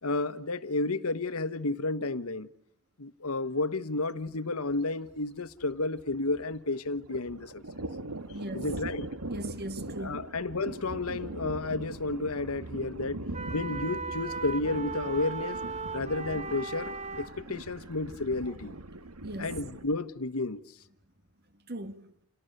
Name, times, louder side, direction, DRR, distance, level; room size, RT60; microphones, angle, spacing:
voice 1, 0.0-2.5 3.0-7.6 8.5-9.1 10.0-13.2 13.5-15.6 15.9-18.8 19.4-20.6, left 2 dB, 70° left, 1.3 m, -31 dB
Thunder, 4.2-4.4 4.7-4.8 5.1-6.6 6.9-19.8, right 2 dB, 80° right, 2.2 m, -41 dB
voice 2, 8.3-8.7 9.3-10.2 19.2-19.8 21.7-22.2, right 1 dB, 45° right, 2.0 m, -39 dB
sound 1, 13.3-17.3, right 4 dB, 30° right, 1.7 m, -37 dB
30.0 x 28.5 x 6.7 m
head